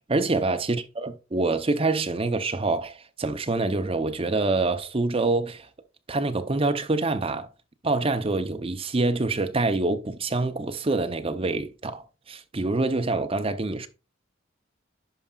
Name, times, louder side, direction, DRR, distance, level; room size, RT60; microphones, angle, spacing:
voice 1, 0.1-5.7 6.1-7.5 7.8-13.9, right 3 dB, 30° right, 0.6 m, -26 dB
11.0 x 4.9 x 2.4 m
head